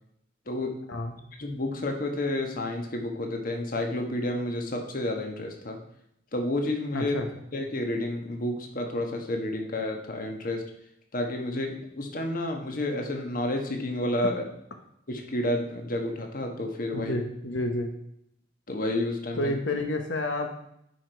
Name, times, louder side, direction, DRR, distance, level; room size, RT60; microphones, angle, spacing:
voice 1, 1.4-5.8 6.3-7.2 7.5-10.6 11.1-14.4 15.1-17.1 18.7-19.5, left 1 dB, 50° left, 3 dB, 1.2 m, -30 dB
voice 2, 6.9-7.3 14.2-14.3 16.9-17.9 19.3-20.5, left 1 dB, 90° left, 5 dB, 1.0 m, -29 dB
10.0 x 5.1 x 4.6 m, 0.74 s
head